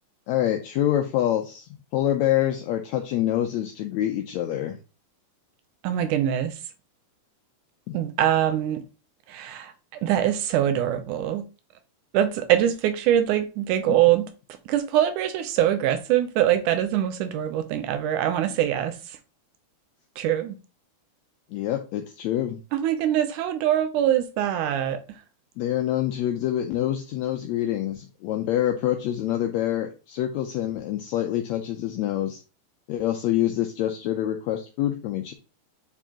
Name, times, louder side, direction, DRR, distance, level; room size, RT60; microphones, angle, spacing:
voice 1, 0.3-4.8 7.9-8.0 21.5-22.6 25.6-32.4 32.9-35.3, left 12 dB, 80° left, 1.7 m, -26 dB
voice 2, 5.8-6.6 7.9-8.8 9.3-11.5 12.1-14.3 14.7-19.2 20.2-20.6 22.7-25.0, right 11 dB, 80° right, 2.2 m, -23 dB
7.9 x 4.6 x 2.9 m
omnidirectional pair, 3.6 m